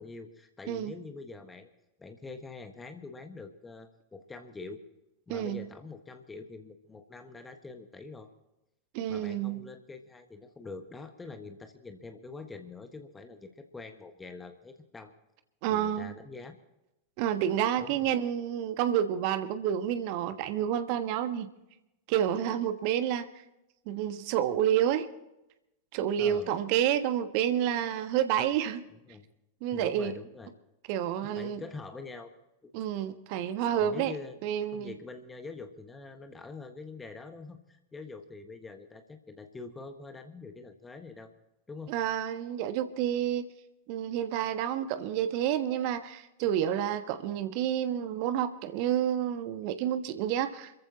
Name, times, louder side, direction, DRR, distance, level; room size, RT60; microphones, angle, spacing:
voice 1, 0.0-1.7 2.0-4.8 5.3-8.3 9.1-15.1 15.7-16.5 17.8-18.1 26.2-26.5 29.1-29.2 29.7-30.5 31.2-32.3 32.6-32.7 33.8-34.4 34.7-41.3 41.7-42.0, left 3 dB, 15° left, 7 dB, 1.5 m, -45 dB
voice 2, 5.3-5.6 8.9-9.6 15.6-16.1 17.2-21.5 22.1-23.3 23.9-25.1 25.9-28.8 29.6-30.1 30.9-31.6 32.7-34.1 34.4-34.9 41.9-43.5 43.9-50.7, right 10 dB, 45° right, 10 dB, 1.4 m, -29 dB
28.0 x 14.5 x 2.9 m, 0.90 s
figure-of-eight pair, 90°, 0 cm